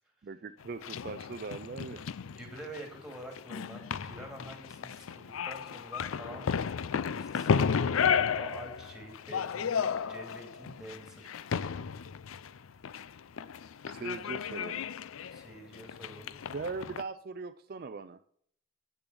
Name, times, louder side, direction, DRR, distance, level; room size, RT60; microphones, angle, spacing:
voice 1, 0.2-2.1 13.8-14.9 16.5-18.3, right 4 dB, 45° right, 10 dB, 0.4 m, -40 dB
sound 1, 0.6-17.0, left 6 dB, 90° left, 0.4 m, -33 dB
voice 2, 2.3-6.5 7.1-8.1 8.3-11.3 15.3-16.4, right 1 dB, 5° right, 2 dB, 2.4 m, -47 dB
8.4 x 6.9 x 7.0 m, 0.63 s
head